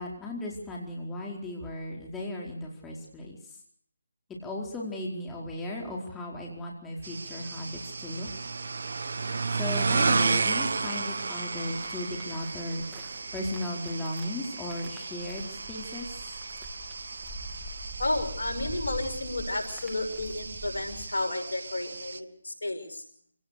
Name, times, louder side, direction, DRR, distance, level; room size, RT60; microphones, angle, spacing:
voice 1, 0.0-3.6 4.4-8.3 9.5-12.8 13.3-16.1, left 1 dB, 10° left, -2 dB, 4.6 m, -36 dB
sound 1, 7.0-22.2, right 4 dB, 60° right, 1.3 m, -33 dB
sound 2, 11.7-21.1, right 1 dB, 5° right, 2.9 m, -44 dB
voice 2, 18.0-23.0, left 2 dB, 75° left, 5 dB, 5.8 m, -32 dB
26.5 x 18.5 x 6.8 m, 0.63 s
figure-of-eight pair, 155°, 0 cm